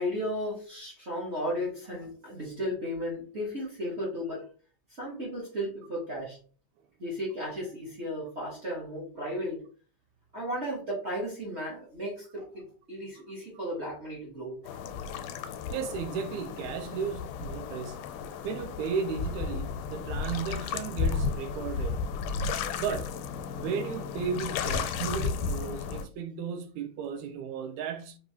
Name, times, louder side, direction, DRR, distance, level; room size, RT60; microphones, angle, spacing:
voice 1, 0.0-4.4 5.0-6.4 7.0-9.6 10.3-14.6, equal, 55° right, 0.7 m, -34 dB
sound 1, 14.7-26.1, left 5 dB, 85° left, 2.0 m, -33 dB
voice 2, 15.7-18.0 18.4-22.0 22.7-23.1 23.6-28.2, right 6 dB, 80° right, 1.7 m, -34 dB
5.3 x 2.6 x 2.8 m
omnidirectional pair, 3.5 m